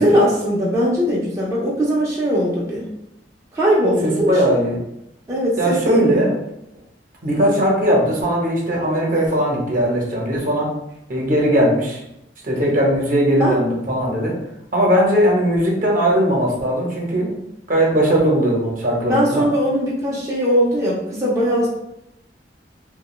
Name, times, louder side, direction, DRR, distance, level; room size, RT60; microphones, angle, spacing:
voice 1, 0.0-2.9 3.5-4.5 5.3-6.2 13.4-13.6 19.1-21.7, equal, 15° right, -6 dB, 0.4 m, -19 dB
voice 2, 4.0-4.8 5.6-6.4 7.2-10.7 11.1-12.0 12.4-14.3 14.7-17.4 17.7-19.5, equal, 50° right, -2 dB, 0.7 m, -19 dB
2.4 x 2.1 x 3.0 m, 0.84 s
head